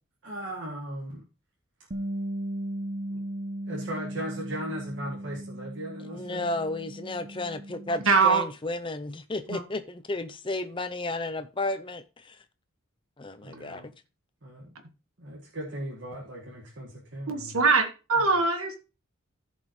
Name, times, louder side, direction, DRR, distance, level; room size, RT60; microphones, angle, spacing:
voice 1, 0.2-1.2 3.1-3.2 3.7-6.6 13.4-13.9 14.4-14.7 15.2-17.6, equal, 55° right, 1.9 m, -37 dB
Bass guitar, 1.9-8.2, right 1 dB, 35° right, 0.7 m, -37 dB
voice 2, 6.0-12.4 13.2-13.8, left 2 dB, 25° left, 0.6 m, -33 dB
voice 3, 8.0-8.4 9.5-9.6 17.3-18.8, right 4 dB, 90° right, 1.6 m, -22 dB
14.5 x 5.4 x 3.2 m
head